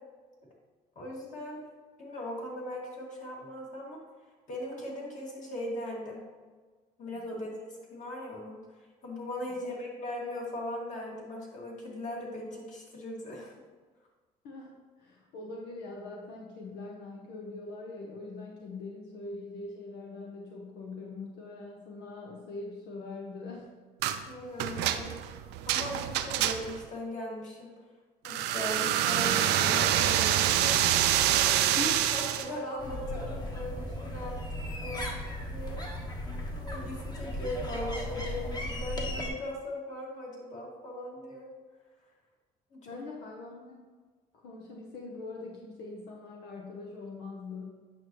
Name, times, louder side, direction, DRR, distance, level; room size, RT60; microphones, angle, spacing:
voice 1, 1.0-1.6 2.0-4.0 4.5-6.2 7.0-8.6 9.0-13.5 24.3-25.1 25.7-27.7 28.2-31.0 32.1-41.5 42.7-43.0, left 1 dB, 45° left, -3 dB, 2.3 m, -39 dB
voice 2, 14.4-23.7 31.6-32.1 42.9-43.8 44.4-47.8, left 3 dB, 80° left, -1 dB, 1.0 m, -42 dB
sound 1, 24.0-24.2 24.6-26.9 28.2-32.5, right 11 dB, 90° right, 0.5 m, -26 dB
sound 2, 32.8-39.3, left 1 dB, 25° left, 1.2 m, -36 dB
8.5 x 6.2 x 3.1 m, 1.4 s
cardioid pair, 110°, 17 cm